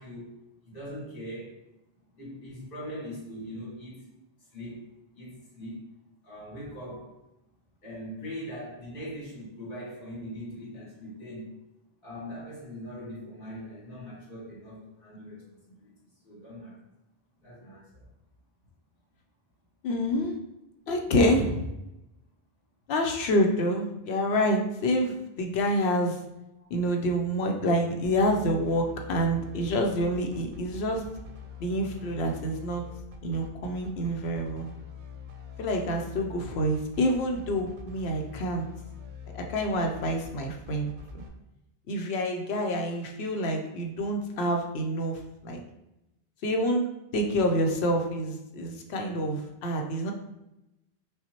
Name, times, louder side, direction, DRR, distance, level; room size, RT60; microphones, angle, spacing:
voice 1, 0.0-1.5 2.1-4.1 4.5-5.8 6.2-7.2 7.8-11.5 12.0-15.9 16.2-16.8 17.4-18.1 21.0-21.3 26.6-26.7, equal, 60° left, -6 dB, 1.8 m, -41 dB
voice 2, 19.8-20.4 20.9-21.6 22.9-26.2 26.7-31.0 31.6-32.8 33.2-34.7 35.6-38.7 39.3-41.2 41.9-45.6 46.4-46.9 47.1-50.1, equal, 85° left, 2 dB, 0.9 m, -27 dB
sound 1, 28.0-41.3, left 5 dB, 55° right, 0.6 m, -44 dB
5.4 x 2.1 x 2.9 m, 0.91 s
omnidirectional pair, 1.0 m